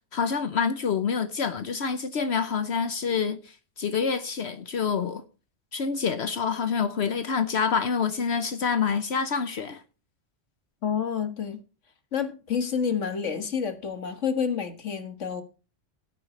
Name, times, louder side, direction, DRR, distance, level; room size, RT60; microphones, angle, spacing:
voice 1, 0.1-5.2 5.7-9.8, left 6 dB, 65° left, 1.1 m, -27 dB
voice 2, 10.8-11.6 12.1-15.4, left 7 dB, 90° left, 1.9 m, -29 dB
16.5 x 9.1 x 3.1 m
omnidirectional pair, 1.2 m